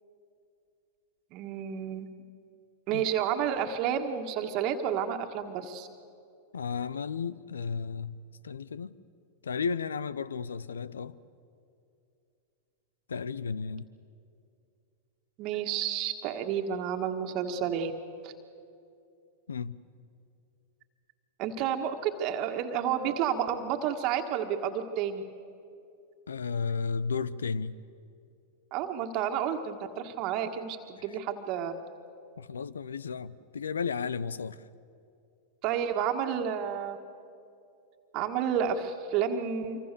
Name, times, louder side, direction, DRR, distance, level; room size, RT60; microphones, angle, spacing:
voice 1, 1.3-2.1 2.9-5.9 15.4-17.9 18.2-18.3 21.4-25.2 28.7-31.7 35.6-37.0 38.1-39.8, right 8 dB, 50° right, 1.7 m, -30 dB
voice 2, 6.5-8.2 8.4-9.0 9.4-11.2 13.1-13.9 19.5-19.8 26.3-27.8 32.4-34.6, left 5 dB, 85° left, 0.7 m, -33 dB
25.5 x 25.0 x 6.9 m
hypercardioid pair, 100°, 0 cm